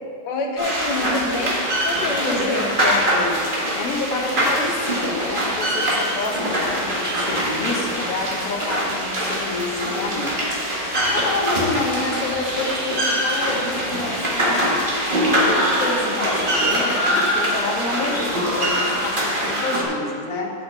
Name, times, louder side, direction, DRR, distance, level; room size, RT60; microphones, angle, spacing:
voice 1, 0.2-2.8, left 2 dB, 85° left, 2 dB, 1.5 m, -27 dB
sound 1, 0.6-19.8, equal, 30° right, 1.6 m, -23 dB
voice 2, 2.2-14.9 15.4-20.5, left 3 dB, 55° left, 0 dB, 1.5 m, -28 dB
7.7 x 5.9 x 7.5 m, 2.3 s
omnidirectional pair, 1.9 m